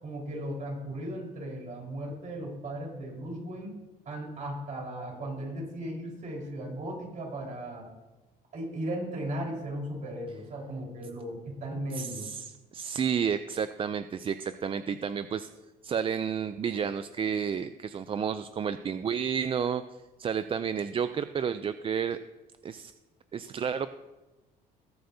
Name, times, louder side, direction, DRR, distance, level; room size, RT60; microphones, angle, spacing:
voice 1, 0.0-3.7 4.0-7.9 8.5-12.3, right 1 dB, 50° right, -1 dB, 4.5 m, -36 dB
voice 2, 11.9-15.5 15.8-19.8 20.2-22.2 22.6-22.9 23.3-23.9, right 7 dB, 30° right, 11 dB, 0.4 m, -31 dB
20.5 x 7.7 x 2.8 m, 1.1 s
cardioid pair, 110°, 17 cm